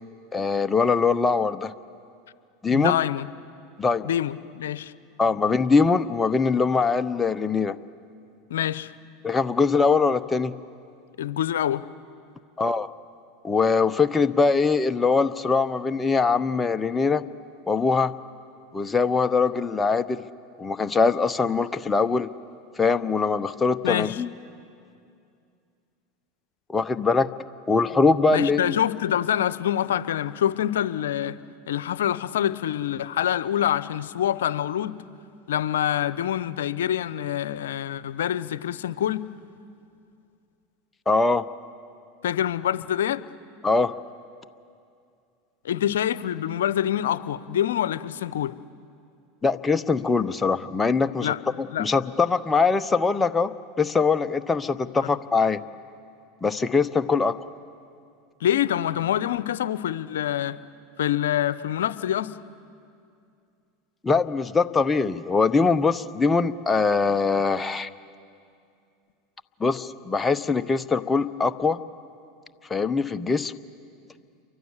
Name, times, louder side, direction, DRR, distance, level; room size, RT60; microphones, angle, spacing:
voice 1, 0.3-1.7 2.6-2.9 3.8-4.1 5.2-7.8 9.2-10.5 12.6-12.9 13.4-17.2 17.7-18.1 18.7-20.2 20.6-22.3 22.8-24.3 26.7-27.3 27.7-28.8 41.1-41.4 43.6-44.0 49.4-53.5 53.8-55.6 56.4-57.4 64.0-67.9 69.6-71.8 72.7-73.5, left 4 dB, 15° left, 10 dB, 0.8 m, -22 dB
voice 2, 2.7-3.3 4.0-4.9 8.5-8.9 11.2-11.8 23.8-24.2 28.3-31.4 31.7-35.0 35.5-39.3 42.2-43.2 45.6-48.6 51.2-51.4 51.7-51.9 55.0-55.1 58.4-60.6 61.0-62.4, left 10 dB, 80° left, 16 dB, 0.7 m, -26 dB
29.5 x 24.0 x 7.3 m, 2.5 s
hypercardioid pair, 95°, 0 cm